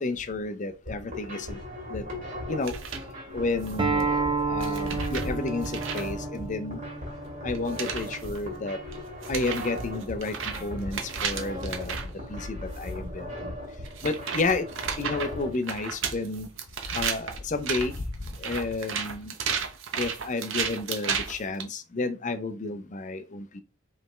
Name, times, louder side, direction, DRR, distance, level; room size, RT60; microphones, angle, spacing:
voice 1, 0.0-1.6 1.9-2.0 2.5-2.7 3.3-4.1 4.5-6.8 7.4-8.8 9.3-10.3 10.6-12.0 12.3-13.5 14.0-14.7 15.0-16.5 16.9-18.0 18.4-19.3 20.0-23.6, left 3 dB, 35° left, 0.5 m, -31 dB
sound 1, 0.7-15.5, left 1 dB, 40° right, 2.2 m, -39 dB
sound 2, 2.6-3.1 3.6-4.0 4.6-6.1 7.6-8.4 8.9-9.0 9.2-12.1 12.8-12.9 13.8-21.6, right 6 dB, 60° right, 0.8 m, -33 dB
Acoustic guitar, 3.8-9.0, right 4 dB, 20° right, 0.7 m, -31 dB
5.1 x 3.3 x 3.2 m
head